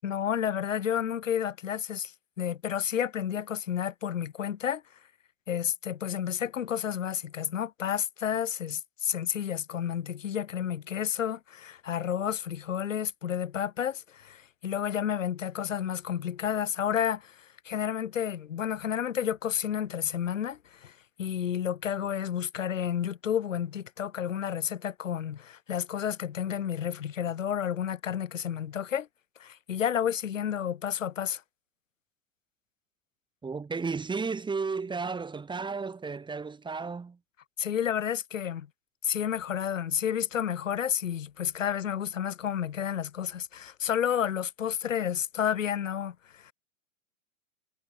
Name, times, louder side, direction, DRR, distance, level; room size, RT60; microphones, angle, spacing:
voice 1, 0.0-4.8 5.5-29.1 29.4-31.4 37.6-38.7 39.0-46.5, left 9 dB, 80° left, 7.6 m, -31 dB
voice 2, 33.4-37.2, right 4 dB, 10° right, 3.4 m, -33 dB
hypercardioid pair, 115°, 38 cm